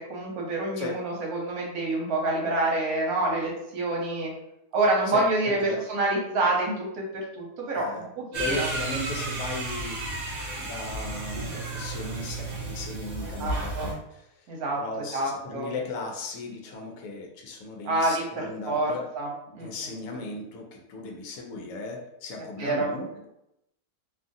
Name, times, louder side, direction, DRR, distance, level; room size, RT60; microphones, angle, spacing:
voice 1, 0.1-4.3 4.7-8.7 13.2-13.9 14.5-15.7 17.8-19.3 19.5-19.7 22.6-22.9, right 2 dB, 75° right, -2 dB, 1.2 m, -27 dB
voice 2, 5.1-5.8 7.7-8.0 8.4-14.5 14.7-19.0 19.6-23.2, left 3 dB, 70° left, 1 dB, 0.9 m, -37 dB
sound 1, 8.3-13.9, right 2 dB, 50° right, 0.7 m, -33 dB
2.6 x 2.4 x 2.5 m, 0.83 s
omnidirectional pair, 1.6 m